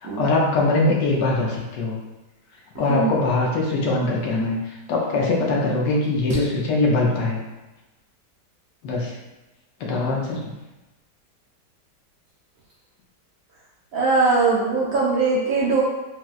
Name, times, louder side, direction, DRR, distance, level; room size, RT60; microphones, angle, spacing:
voice 1, 0.0-2.0 2.8-7.4 8.8-9.2 9.8-10.5, left 2 dB, 80° left, -2 dB, 1.3 m, -22 dB
voice 2, 13.9-15.8, right 4 dB, 70° right, -5 dB, 0.8 m, -20 dB
4.2 x 2.0 x 2.3 m, 1.1 s
omnidirectional pair, 1.9 m